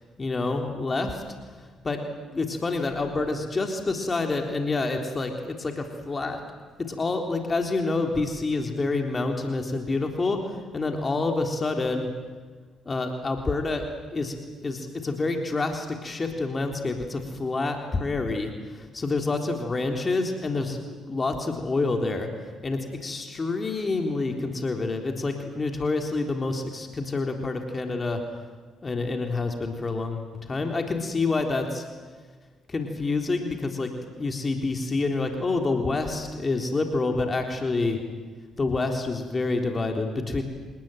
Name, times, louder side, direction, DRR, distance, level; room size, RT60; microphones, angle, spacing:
voice 1, 0.2-1.2 1.8-2.0 2.3-6.4 6.8-12.1 12.9-22.3 22.6-28.2 28.8-31.9 32.7-38.0 38.6-40.4, left 3 dB, 35° left, 3 dB, 3.8 m, -28 dB
27.0 x 19.5 x 9.2 m, 1.4 s
hypercardioid pair, 50°, 0 cm